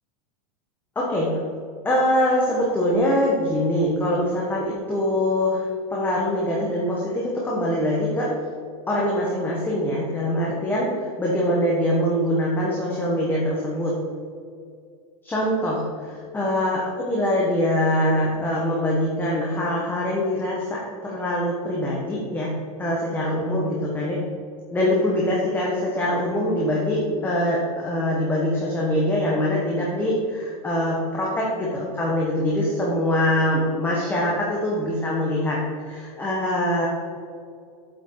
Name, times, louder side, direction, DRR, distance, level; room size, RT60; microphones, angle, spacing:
voice 1, 0.9-1.3 1.8-8.3 8.9-13.9 15.2-22.5 22.8-24.2 24.7-35.6 35.8-36.9, left 1 dB, 10° left, -4 dB, 1.3 m, -23 dB
9.2 x 7.9 x 3.9 m, 2.3 s
supercardioid pair, 150°, 19 cm